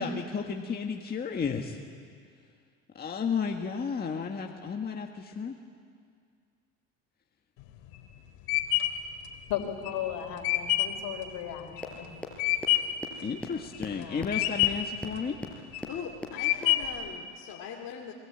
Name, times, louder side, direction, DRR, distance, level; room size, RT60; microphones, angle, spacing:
voice 1, 0.0-1.8 2.9-5.6 13.2-15.4, left 5 dB, 25° left, 2 dB, 1.7 m, -33 dB
sound 1, 7.6-13.0 13.5-14.0 14.3-15.0 15.5-16.0 16.4-17.1, left 14 dB, 80° left, 3.0 m, -27 dB
voice 2, 9.5-12.1 13.9-14.3, left 10 dB, 65° left, 4 dB, 4.7 m, -36 dB
sound 2, 11.8-11.9 12.2-12.3 12.6-12.7 13.0-13.1 13.4-13.5 13.8-13.9 14.2-14.3 14.6-14.7 15.0-15.1 15.4-15.5 15.8-15.9 16.2-16.3 16.6-16.7, left 2 dB, 5° left, 4.6 m, -35 dB
voice 3, 15.9-18.1, left 7 dB, 45° left, 0 dB, 2.5 m, -40 dB
27.5 x 23.0 x 9.0 m, 2.2 s
cardioid pair, 120°, 36 cm